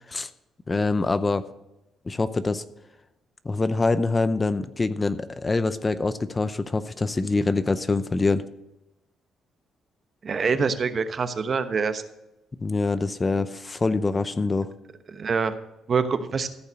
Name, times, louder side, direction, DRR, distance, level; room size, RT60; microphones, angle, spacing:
voice 1, 0.7-1.4 2.1-2.6 3.4-8.4 12.6-14.7, left 3 dB, 25° left, 13 dB, 0.6 m, -25 dB
voice 2, 10.2-12.0 15.1-15.5 15.9-16.5, right 5 dB, 45° right, 10 dB, 1.0 m, -25 dB
14.5 x 5.6 x 6.3 m, 0.92 s
cardioid pair, 90°, 0 cm